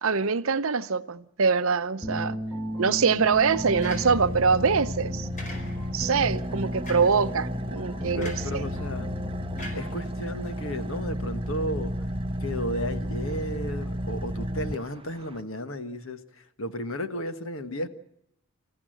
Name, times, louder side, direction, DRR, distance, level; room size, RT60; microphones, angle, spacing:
voice 1, 0.0-2.4 2.8-5.3 5.9-8.6, right 5 dB, 65° right, 0.7 m, -24 dB
sound 1, 2.0-10.1, left 1 dB, 5° left, 1.4 m, -35 dB
Car / Idling, 2.5-15.4, equal, 25° right, 1.1 m, -33 dB
sound 2, 3.8-4.5 5.4-6.0 6.9-7.3 8.2-8.6 9.6-10.5, left 1 dB, 35° left, 4.7 m, -42 dB
voice 2, 8.1-9.1 9.7-11.9 12.4-17.9, equal, 65° left, 1.5 m, -33 dB
28.0 x 14.5 x 7.8 m
head